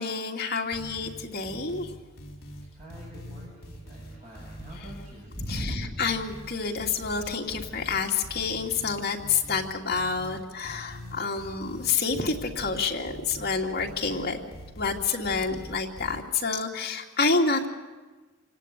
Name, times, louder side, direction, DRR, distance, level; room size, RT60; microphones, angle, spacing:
voice 1, 0.0-1.9 4.7-4.9 5.5-14.5 14.8-17.7, left 4 dB, 45° left, 0 dB, 2.6 m, -28 dB
sound 1, 0.7-16.2, equal, 65° left, 4.7 m, -43 dB
voice 2, 2.6-6.0, equal, 30° right, -4 dB, 7.2 m, -39 dB
27.0 x 18.0 x 8.4 m, 1.3 s
head